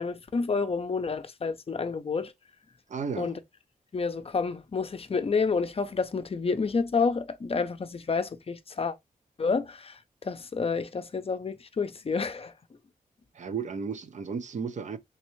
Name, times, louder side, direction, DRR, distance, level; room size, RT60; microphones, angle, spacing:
voice 1, 0.0-2.3 3.2-3.4 3.9-9.0 9.4-12.5, left 4 dB, 40° left, 0.5 m, -29 dB
voice 2, 2.9-3.3 13.3-15.0, right 6 dB, 55° right, 0.5 m, -34 dB
3.4 x 3.2 x 3.0 m
wide cardioid pair, 90°, 15 cm